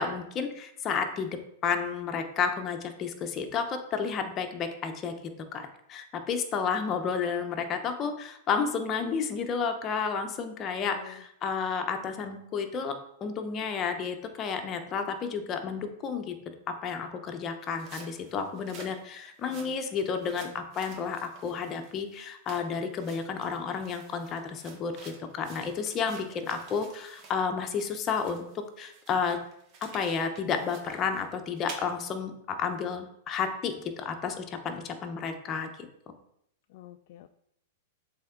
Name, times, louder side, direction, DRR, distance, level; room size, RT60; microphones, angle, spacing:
voice 1, 0.0-5.1 5.5-13.0 13.2-16.3 16.8-29.4 29.8-35.9, left 6 dB, 30° left, 5 dB, 0.9 m, -31 dB
voice 2, 10.8-11.2 26.3-26.5 34.7-34.8 36.7-37.3, left 13 dB, 55° left, 9 dB, 0.4 m, -48 dB
sound 1, 17.6-27.4 27.7-31.8, right 4 dB, 45° right, 1.4 m, -50 dB
7.4 x 3.5 x 3.8 m, 0.75 s
hypercardioid pair, 130°, 0 cm